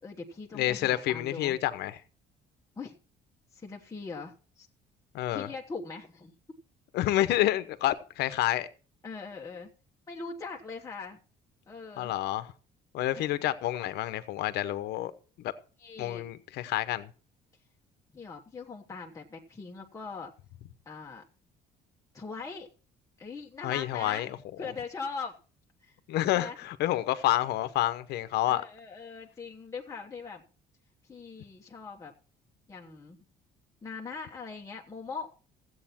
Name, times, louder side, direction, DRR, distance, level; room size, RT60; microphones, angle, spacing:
voice 1, 0.0-1.6 2.8-2.9 3.5-4.7 5.3-6.3 9.0-9.7 10.1-11.2 11.7-12.1 13.1-13.3 15.8-16.3 18.1-20.3 20.9-21.2 22.1-22.7 23.2-24.3 24.6-25.4 25.8-26.0 26.3-26.6 28.4-30.4 31.1-32.1 32.7-33.2 33.8-35.3, left 4 dB, 20° left, 1.2 m, -41 dB
voice 2, 0.5-2.0 5.1-5.5 6.9-8.7 12.0-12.4 12.9-15.1 15.4-15.5 16.0-17.1 23.6-24.3 26.1-28.6, left 14 dB, 80° left, 0.9 m, -28 dB
14.0 x 8.1 x 4.4 m
cardioid pair, 110°, 17 cm